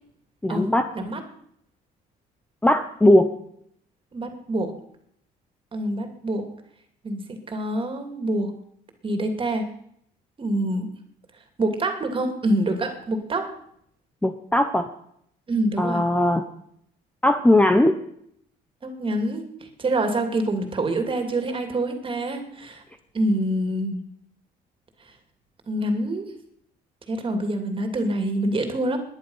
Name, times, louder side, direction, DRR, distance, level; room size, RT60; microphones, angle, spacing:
voice 1, 0.4-0.9 2.6-3.3 14.2-14.9 15.8-16.5 17.2-17.9, left 1 dB, 10° left, 8 dB, 0.9 m, -19 dB
voice 2, 4.1-4.7 5.7-6.5 7.0-7.2 7.5-8.5 9.0-9.6 10.4-10.9 11.6-13.5 15.5-16.0 18.8-19.5 19.8-22.8 23.1-24.0 25.7-26.3 27.1-29.0, right 1 dB, 30° right, 6 dB, 2.7 m, -26 dB
19.0 x 10.5 x 5.7 m, 0.71 s
cardioid pair, 110°, 17 cm